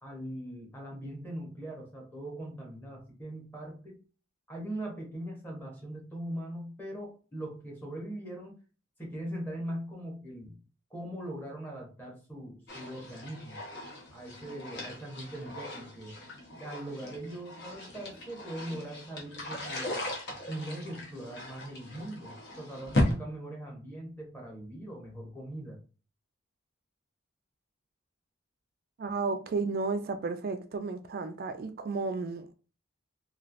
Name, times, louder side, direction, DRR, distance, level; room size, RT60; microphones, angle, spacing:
voice 1, 0.0-4.0 4.5-8.6 9.0-10.6 10.9-13.6 14.1-16.2 16.5-20.0 20.5-25.8, right 1 dB, 10° left, 1.0 m, -41 dB
sound 1, 12.7-23.1, left 1 dB, 55° left, 0.9 m, -37 dB
voice 2, 29.0-32.5, right 4 dB, 45° right, 0.3 m, -33 dB
3.1 x 2.5 x 2.4 m
head